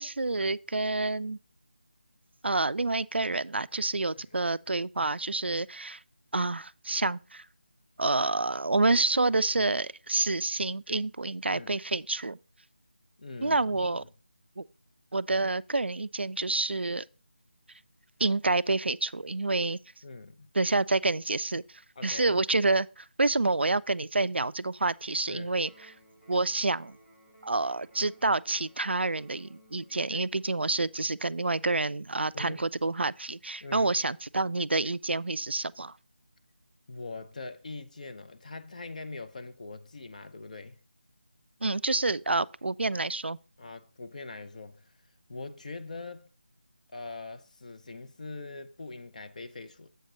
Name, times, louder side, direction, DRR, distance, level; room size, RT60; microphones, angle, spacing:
voice 1, 0.0-1.4 2.4-6.0 6.3-7.5 8.0-12.4 13.4-14.0 14.6-14.7 15.1-17.0 18.2-19.8 20.5-25.7 26.3-27.0 27.4-36.0 41.6-43.4, right 2 dB, 85° right, 0.3 m, -28 dB
voice 2, 13.2-14.0 20.0-20.5 22.0-22.4 25.3-25.5 32.3-32.6 33.6-33.9 36.9-40.8 43.6-44.9 45.3-46.3 46.9-49.9, left 3 dB, 45° left, 0.5 m, -42 dB
Electric guitar, 25.6-33.6, equal, 80° left, 3.2 m, -60 dB
7.9 x 6.5 x 3.7 m
figure-of-eight pair, 160°, 6 cm